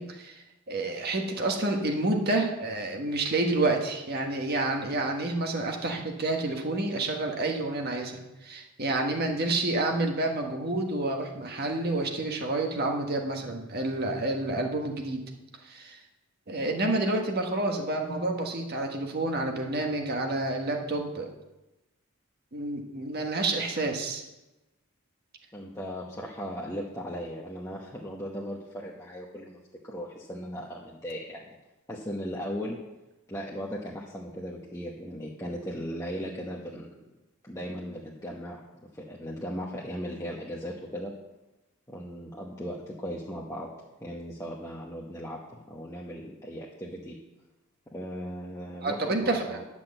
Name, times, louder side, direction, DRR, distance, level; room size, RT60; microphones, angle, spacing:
voice 1, 0.0-15.2 15.6-16.0 16.5-21.3 22.5-24.2 48.8-49.6, right 2 dB, 45° right, 2 dB, 1.4 m, -29 dB
voice 2, 25.5-31.5 31.9-32.8 33.3-36.9 37.4-38.6 38.9-41.1 41.9-43.7 44.0-45.4 45.6-47.1 47.9-49.6, equal, 15° left, -4 dB, 1.0 m, -37 dB
10.5 x 6.1 x 7.8 m, 1.0 s
head